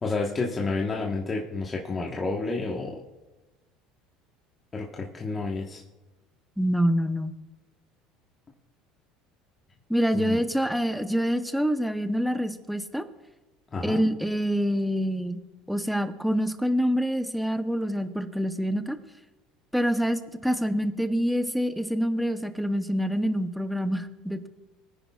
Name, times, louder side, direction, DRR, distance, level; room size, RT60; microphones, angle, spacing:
voice 1, 0.0-3.0 4.7-5.8 10.1-10.4 13.7-14.0, left 3 dB, 25° left, -2 dB, 1.3 m, -30 dB
voice 2, 6.6-7.3 9.9-13.0 13.8-15.4 15.7-19.0 19.7-24.5, equal, ahead, 8 dB, 0.8 m, -26 dB
22.0 x 10.0 x 2.4 m, 1.1 s
supercardioid pair, 125°, 0 cm